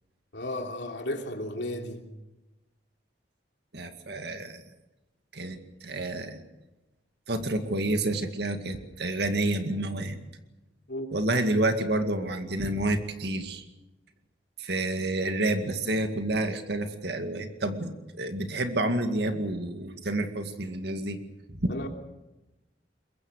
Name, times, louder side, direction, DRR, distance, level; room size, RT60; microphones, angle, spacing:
voice 1, 0.3-2.0 10.9-11.1 21.7-21.9, left 1 dB, 65° left, 3.1 m, -34 dB
voice 2, 3.7-4.6 5.3-6.4 7.3-10.2 11.1-13.6 14.6-21.2 21.5-21.7, right 1 dB, 65° right, 2.2 m, -29 dB
22.5 x 22.5 x 6.6 m
head